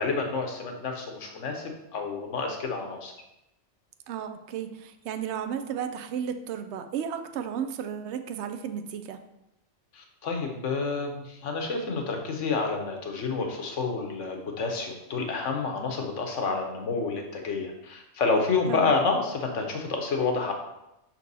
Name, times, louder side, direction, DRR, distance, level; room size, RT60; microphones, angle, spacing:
voice 1, 0.0-3.1 9.9-20.5, left 4 dB, 80° left, 3 dB, 1.3 m, -29 dB
voice 2, 4.1-9.2 18.7-18.9, right 8 dB, 70° right, 8 dB, 0.8 m, -33 dB
5.9 x 4.4 x 4.0 m, 0.88 s
omnidirectional pair, 1.2 m